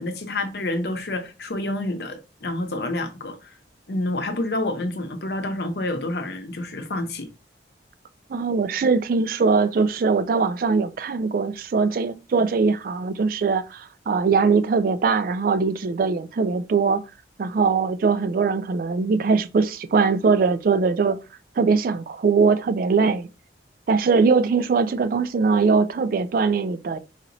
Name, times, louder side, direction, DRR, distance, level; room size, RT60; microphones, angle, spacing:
voice 1, 0.0-3.6 3.9-7.3, left 2 dB, 60° left, 0.7 m, -28 dB
voice 2, 8.3-17.0 17.4-21.2 21.6-23.3 23.9-27.0, right 4 dB, 50° right, 0.3 m, -21 dB
4.2 x 2.9 x 2.6 m
head